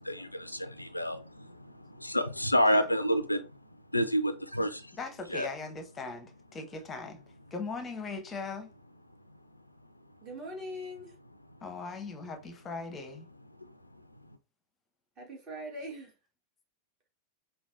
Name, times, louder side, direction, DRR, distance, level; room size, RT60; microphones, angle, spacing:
voice 1, 0.0-1.4 2.0-3.4 3.9-4.9 5.3-5.5, equal, 85° left, 0.3 m, -28 dB
voice 2, 4.9-7.2 7.5-8.7 11.6-13.3, left 4 dB, 20° left, 0.7 m, -39 dB
voice 3, 10.2-11.1 15.2-16.1, equal, 35° right, 1.5 m, -41 dB
5.0 x 2.3 x 2.5 m
figure-of-eight pair, 90°, 0 cm